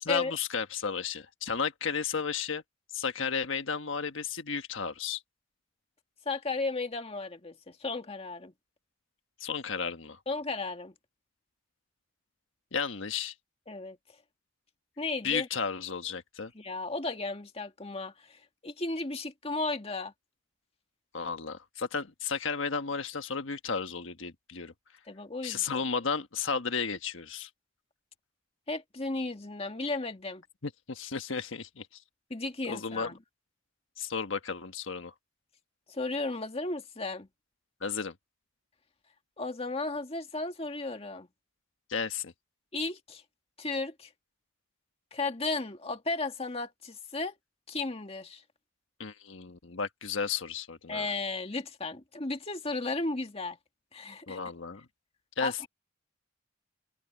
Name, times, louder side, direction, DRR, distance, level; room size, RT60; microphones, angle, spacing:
voice 1, 0.0-2.6 2.9-5.2 9.4-10.2 12.7-13.3 15.2-16.5 21.1-24.7 25.4-27.5 30.6-31.9 32.7-33.1 34.0-35.1 37.8-38.1 41.9-42.3 49.0-51.1 54.3-54.8 55.4-55.7, left 5 dB, 85° left, 1.4 m, -33 dB
voice 2, 6.3-8.5 10.3-10.9 13.7-14.0 15.0-15.5 16.6-20.1 25.1-25.8 28.7-30.4 32.3-33.2 35.9-37.3 39.4-41.3 42.7-43.2 43.6-44.1 45.1-47.3 47.7-48.4 50.9-53.6 53.9-54.4 55.4-55.7, left 3 dB, 30° left, 1.9 m, -34 dB
open air
head